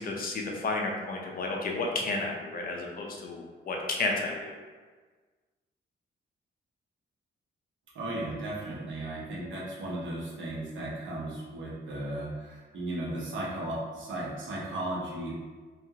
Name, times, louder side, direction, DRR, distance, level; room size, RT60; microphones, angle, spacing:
voice 1, 0.0-4.5, left 3 dB, 50° left, 0 dB, 0.5 m, -32 dB
voice 2, 7.9-15.3, right 1 dB, 85° right, -5 dB, 0.9 m, -35 dB
2.4 x 2.3 x 2.9 m, 1.4 s
wide cardioid pair, 140°, 20 cm